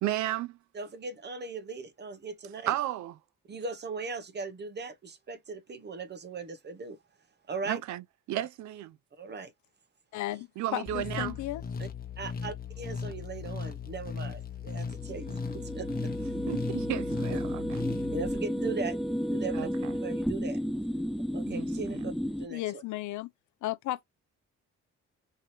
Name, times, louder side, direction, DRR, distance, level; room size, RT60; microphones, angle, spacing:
voice 1, 0.0-0.6 2.7-3.2 7.7-9.0 10.6-11.4 16.5-17.6 19.5-19.9 21.5-22.0, right 14 dB, 70° right, 0.5 m, -33 dB
voice 2, 0.7-2.8 3.5-7.0 7.5-7.8 9.2-9.5 11.8-11.9 12.2-16.1 18.1-19.7 20.0-20.6 21.3-22.8, right 4 dB, 35° right, 0.9 m, -39 dB
voice 3, 10.1-11.6 22.5-23.3 23.6-24.1, left 15 dB, 75° left, 0.6 m, -34 dB
sound 1, 10.9-18.4, left 6 dB, 30° left, 1.0 m, -38 dB
sound 2, 14.9-22.5, equal, ahead, 0.3 m, -32 dB
4.6 x 2.9 x 3.0 m
cardioid pair, 90°, 30 cm